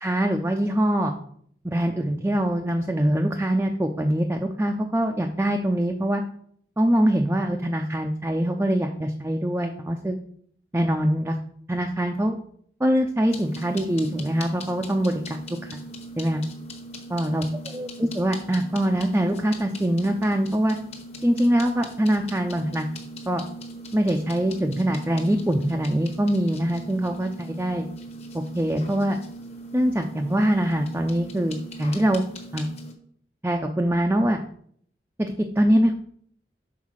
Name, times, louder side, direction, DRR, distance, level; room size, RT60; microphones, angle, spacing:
voice 1, 0.0-1.1 1.6-6.2 6.8-10.2 10.7-11.4 11.7-12.4 12.8-15.8 16.2-16.4 17.1-20.8 21.2-22.9 23.3-23.4 23.9-27.9 28.3-29.2 29.7-32.2 32.5-32.7 33.4-34.4 35.2-35.9, right 1 dB, 15° right, 3 dB, 0.4 m, -23 dB
sound 1, 13.3-32.9, equal, 35° left, 1.1 m, -40 dB
5.7 x 4.0 x 6.2 m, 0.62 s
head